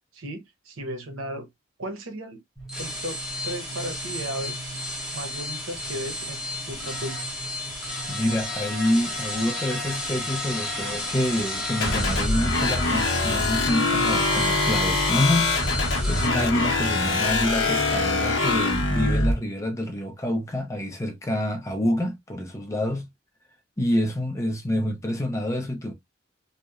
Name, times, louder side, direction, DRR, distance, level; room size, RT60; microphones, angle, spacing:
voice 1, 0.1-1.5 1.8-2.4 2.8-3.2 3.4-4.8 5.1-7.2, right 1 dB, 90° right, 0.7 m, -35 dB
sound 1, 2.6-16.3, left 1 dB, 5° right, 0.9 m, -32 dB
voice 2, 8.1-15.5 16.1-23.1 23.8-25.9, left 1 dB, 15° left, 0.5 m, -27 dB
sound 2, 11.8-19.3, left 2 dB, 70° left, 0.7 m, -23 dB
2.8 x 2.0 x 2.3 m
head